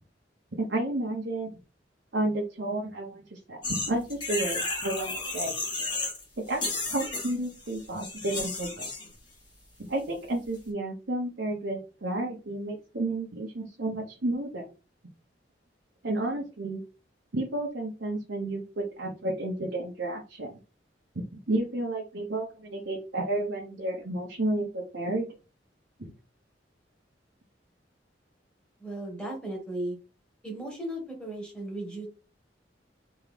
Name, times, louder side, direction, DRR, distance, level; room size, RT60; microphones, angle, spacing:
voice 1, 0.6-1.6 2.1-5.5 6.5-8.9 9.9-14.7 16.0-16.8 17.3-20.5 21.5-25.3, right 1 dB, 70° right, -1 dB, 0.9 m, -31 dB
sound 1, 3.6-6.2 6.5-9.1, left 3 dB, 25° left, 1.5 m, -33 dB
voice 2, 28.8-30.0 30.4-32.1, right 1 dB, 5° left, 0 dB, 1.5 m, -36 dB
3.6 x 3.1 x 3.4 m, 0.32 s
head